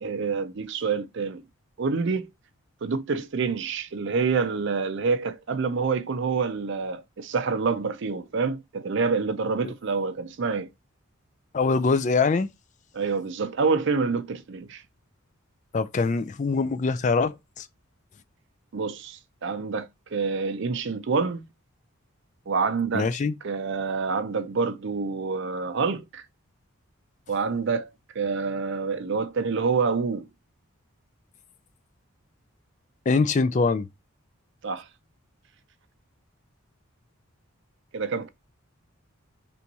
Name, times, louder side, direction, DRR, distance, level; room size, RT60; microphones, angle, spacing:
voice 1, 0.0-1.4 1.8-2.3 2.8-10.7 12.9-14.8 18.7-21.4 22.5-23.1 23.4-26.2 27.3-27.9 28.1-30.3 34.6-34.8 37.9-38.3, right 4 dB, 55° right, 0.5 m, -27 dB
voice 2, 11.5-12.5 15.7-17.7 22.9-23.3 33.1-33.9, left 4 dB, 35° left, 0.3 m, -23 dB
3.4 x 3.0 x 3.9 m
head